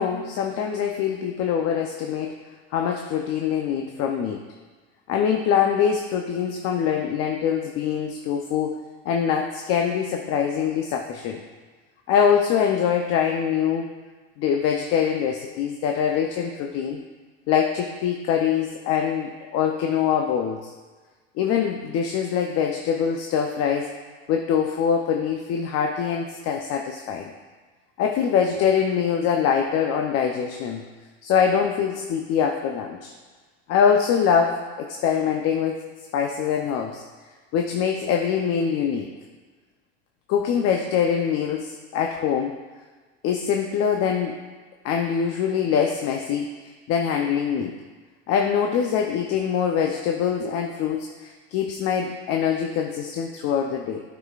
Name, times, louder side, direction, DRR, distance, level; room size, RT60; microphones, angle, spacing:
voice 1, 0.0-2.3 2.7-4.4 5.1-8.8 9.0-11.4 12.1-13.9 14.4-17.0 17.5-20.7 21.4-23.9 24.3-27.3 28.0-30.8 31.2-33.1 33.7-35.8 36.1-37.0 37.5-39.1 40.3-42.5 43.2-44.4 44.8-47.7 48.3-54.0, left 7 dB, 45° left, 2 dB, 0.7 m, -24 dB
11.0 x 6.0 x 2.4 m, 1.4 s
supercardioid pair, 110°, 33 cm